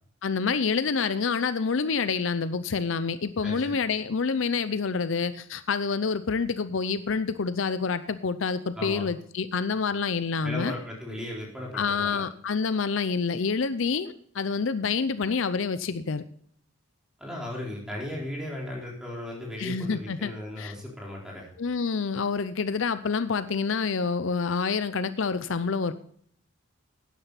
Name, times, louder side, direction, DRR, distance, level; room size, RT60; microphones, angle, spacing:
voice 1, 0.2-10.7 11.7-16.2 19.6-20.7 21.6-25.9, left 5 dB, 65° left, 13 dB, 0.6 m, -27 dB
voice 2, 3.4-3.7 8.8-9.1 10.4-12.2 17.2-21.5, left 1 dB, 5° right, -3 dB, 4.1 m, -36 dB
12.0 x 10.0 x 4.1 m, 0.62 s
head